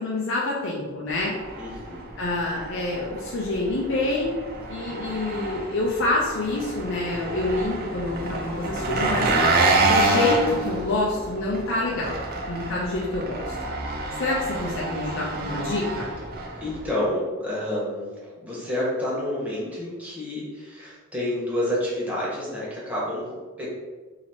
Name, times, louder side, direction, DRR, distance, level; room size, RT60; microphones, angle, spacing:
voice 1, 0.0-1.4 2.2-4.3 4.7-9.5 9.8-12.2 12.5-13.5 14.2-16.1, left 2 dB, 65° left, -4 dB, 0.6 m, -27 dB
Engine, 1.1-16.9, right 2 dB, 50° right, 0.5 m, -27 dB
voice 2, 1.6-2.1 16.6-23.7, left 1 dB, 5° right, -7 dB, 1.2 m, -29 dB
2.9 x 2.9 x 4.3 m, 1.3 s
head